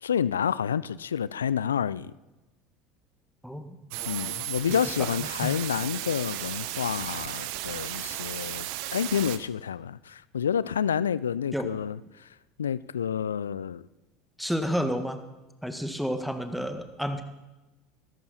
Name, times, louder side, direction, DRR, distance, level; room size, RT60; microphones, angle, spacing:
voice 1, 0.0-2.1 4.1-8.7 8.9-12.3 12.6-13.9, left 8 dB, 80° left, 19 dB, 0.5 m, -29 dB
voice 2, 3.4-3.8 4.7-4.8 5.4-5.6 11.5-11.7 14.4-15.2 15.6-17.2, equal, ahead, 8 dB, 1.9 m, -30 dB
sound 1, 3.9-9.4, right 14 dB, 60° right, 1.0 m, -35 dB
20.5 x 14.0 x 4.3 m, 1.1 s
figure-of-eight pair, 75°, 0 cm